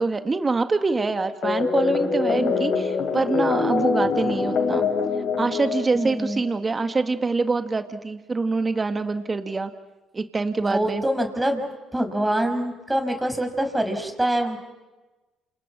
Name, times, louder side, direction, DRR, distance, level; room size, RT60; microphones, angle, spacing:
voice 1, 0.0-4.9 5.4-9.7 10.1-11.0, right 3 dB, 30° right, 8 dB, 1.8 m, -25 dB
sound 1, 1.4-6.6, left 4 dB, 65° left, 3.4 m, -24 dB
voice 2, 5.9-6.4 10.6-11.6 11.9-14.6, right 1 dB, 10° right, 5 dB, 5.7 m, -25 dB
28.5 x 27.5 x 6.1 m, 1.1 s
supercardioid pair, 65°, 0 cm